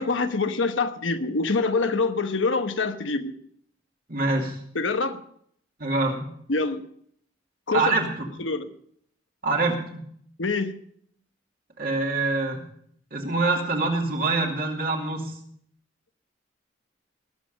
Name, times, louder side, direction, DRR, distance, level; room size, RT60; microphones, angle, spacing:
voice 1, 0.0-3.3 4.7-5.2 6.5-6.8 7.7-7.8 8.4-8.7 10.4-10.7, left 3 dB, 90° left, 8 dB, 1.1 m, -25 dB
voice 2, 4.1-4.6 5.8-6.3 7.7-8.1 9.4-10.0 11.8-12.6 13.1-15.3, right 3 dB, 50° right, 1 dB, 2.5 m, -25 dB
19.5 x 7.4 x 5.2 m, 0.66 s
head